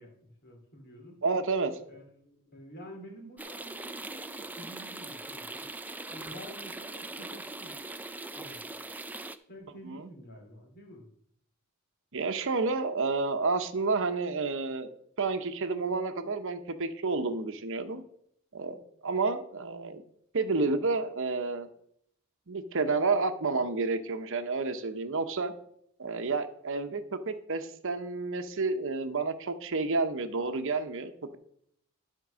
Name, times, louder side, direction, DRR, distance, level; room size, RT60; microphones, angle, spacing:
voice 1, 0.0-1.2 1.9-5.7 6.1-7.8 8.3-8.6 9.5-11.1, equal, 50° left, 2 dB, 2.6 m, -49 dB
voice 2, 1.2-1.8 9.8-10.1 12.1-14.9 15.2-18.0 18.5-20.0 20.3-21.7 22.5-25.5 26.0-31.4, right 3 dB, 65° right, 8 dB, 0.9 m, -30 dB
sound 1, 3.4-9.4, right 2 dB, 10° right, 0.4 m, -41 dB
12.0 x 4.5 x 6.2 m, 0.69 s
head